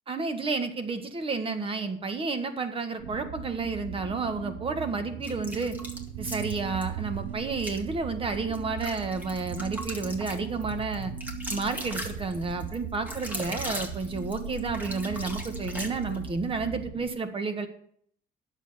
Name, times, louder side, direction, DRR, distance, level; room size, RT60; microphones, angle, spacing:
voice 1, 0.1-5.7 6.2-11.1 11.5-17.7, right 4 dB, 30° right, 8 dB, 1.6 m, -31 dB
sound 1, 3.0-17.1, right 6 dB, 65° right, 1.9 m, -38 dB
sound 2, 5.2-6.9 7.5-7.8 8.3-16.3, equal, 10° right, 2.0 m, -39 dB
10.5 x 7.3 x 7.1 m, 0.63 s
cardioid pair, 110°, 17 cm